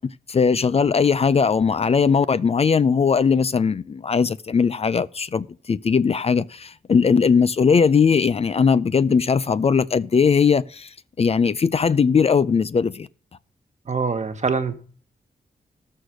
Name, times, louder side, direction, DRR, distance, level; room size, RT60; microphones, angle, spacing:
voice 1, 0.3-13.1, left 5 dB, 40° left, 0.5 m, -19 dB
voice 2, 13.9-14.8, right 5 dB, 50° right, 1.5 m, -24 dB
13.0 x 6.5 x 6.4 m
wide cardioid pair, 100°, 16 cm